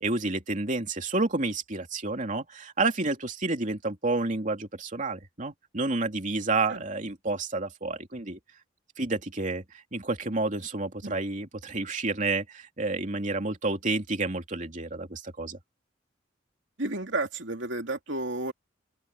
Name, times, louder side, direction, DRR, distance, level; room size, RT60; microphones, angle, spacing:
voice 1, 0.0-8.4 9.0-9.6 9.9-15.6, right 3 dB, 40° right, 2.9 m, -30 dB
voice 2, 16.8-18.5, right 2 dB, 70° right, 3.0 m, -32 dB
open air
head